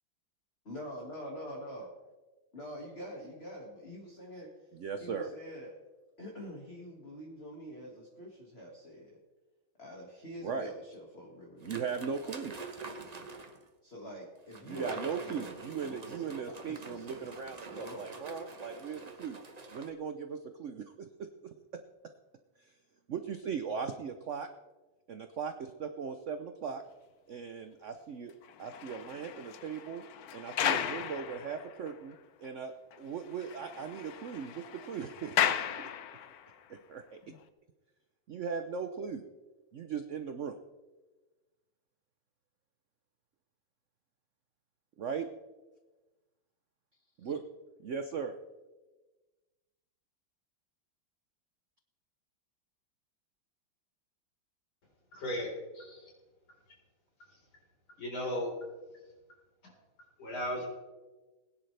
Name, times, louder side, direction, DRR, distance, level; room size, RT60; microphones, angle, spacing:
voice 1, 0.6-1.9 2.5-4.5 5.0-5.7 6.2-9.2 9.8-11.9 12.2-12.5 13.8-18.1 18.8-19.0, equal, 30° left, -2 dB, 2.1 m, -46 dB
voice 2, 4.7-5.3 10.4-10.7 11.6-12.5 14.7-19.4 19.7-21.3 21.7-21.8 23.1-24.5 25.1-26.8 27.3-28.3 28.6-30.0 30.3-32.2 32.4-32.7 33.0-35.9 36.7-37.2 38.3-39.2 39.7-40.6 45.0-45.3 47.2-47.4 47.8-48.3, right 6 dB, 80° right, 7 dB, 0.6 m, -38 dB
sound 1, 11.6-13.6 14.5-19.9, right 3 dB, 35° right, 0.6 m, -46 dB
sound 2, 28.4-32.1 32.4-32.5 32.9-33.0 33.3-36.5 37.2-37.4, left 9 dB, 65° left, 1.0 m, -35 dB
voice 3, 55.1-56.1 58.0-58.5 59.6-59.7 60.2-60.7, equal, 90° left, -3 dB, 5.0 m, -36 dB
20.5 x 10.5 x 3.3 m, 1.2 s
omnidirectional pair, 2.2 m